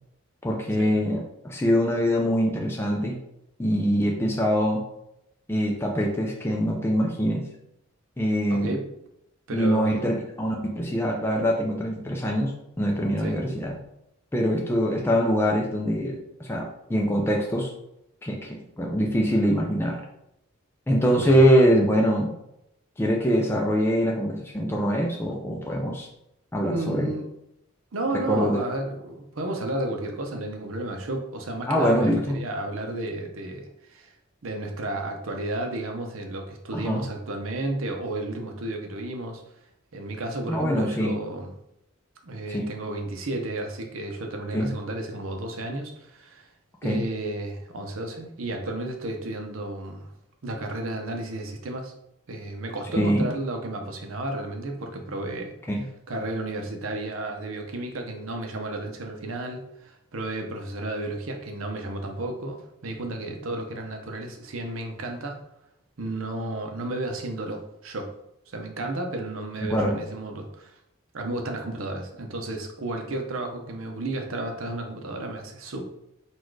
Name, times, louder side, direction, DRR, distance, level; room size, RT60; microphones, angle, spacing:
voice 1, 0.4-3.2 3.6-4.8 5.5-7.4 8.2-8.8 9.5-12.5 12.8-13.8 14.3-17.7 18.2-20.0 20.9-22.3 23.0-26.1 26.5-27.1 28.3-28.6 31.7-32.4 36.7-37.0 40.5-41.1 42.5-42.7 44.5-44.7 46.8-47.0 52.9-53.3 55.7-55.9 69.6-70.0, equal, 10° left, -1 dB, 0.4 m, -23 dB
voice 2, 8.5-8.9 9.5-10.1 13.2-13.4 21.1-21.5 26.7-27.3 27.9-34.1 34.4-39.4 39.9-41.5 42.2-46.5 46.8-50.1 50.4-51.9 52.3-55.5 56.1-65.4 66.0-68.1 68.5-70.7 71.1-75.8, right 2 dB, 80° right, 4 dB, 0.7 m, -32 dB
4.3 x 2.4 x 4.6 m, 0.81 s
head